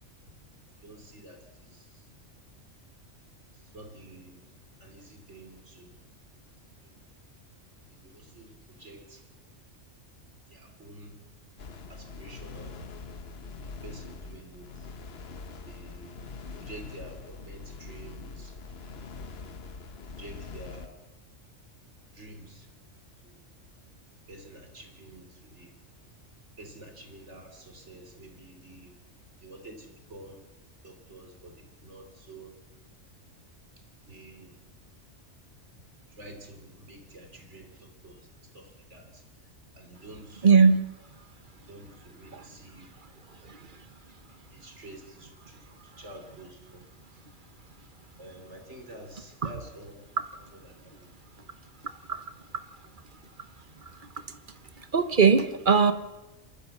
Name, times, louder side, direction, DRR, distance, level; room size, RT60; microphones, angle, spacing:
voice 1, 0.8-2.0 3.6-4.4 4.8-6.0 6.8-7.0 7.9-9.2 10.5-11.2 11.9-12.9 13.6-14.9 15.6-18.5 18.8-19.1 20.2-21.0 22.1-22.7 23.2-23.4 24.3-25.7 26.6-29.0 29.4-30.4 30.8-32.5 34.1-34.5 36.1-38.3 38.5-39.2 39.8-40.5 41.6-42.9 44.5-45.7 46.0-46.8 48.2-50.0 50.3-51.5, right 1 dB, 65° right, 4 dB, 3.6 m, -49 dB
sound 1, 11.6-20.9, left 4 dB, 55° left, 1.2 m, -43 dB
voice 2, 40.4-40.8 42.3-42.5 43.5-43.7 49.4-49.5 52.1-52.2 54.9-55.9, right 5 dB, 45° right, 11 dB, 1.1 m, -20 dB
27.0 x 14.0 x 7.2 m, 1.1 s
omnidirectional pair, 1.3 m